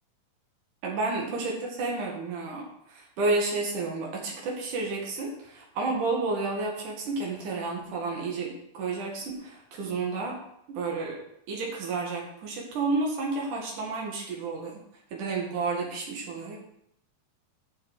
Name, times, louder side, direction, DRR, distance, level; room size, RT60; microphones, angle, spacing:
voice 1, 0.8-10.4 10.7-14.8 15.1-16.6, right 3 dB, 80° right, -1 dB, 3.5 m, -31 dB
9.0 x 7.0 x 6.6 m, 0.76 s
omnidirectional pair, 3.5 m